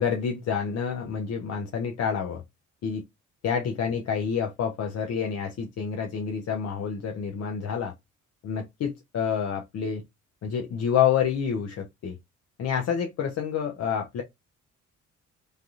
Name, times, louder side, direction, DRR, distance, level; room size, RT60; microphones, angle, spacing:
voice 1, 0.0-2.4 2.8-3.0 3.4-7.9 8.4-10.0 10.4-12.1 12.6-14.2, left 7 dB, 55° left, 0.6 m, -28 dB
3.2 x 2.3 x 2.6 m
cardioid pair, 90°, 30 cm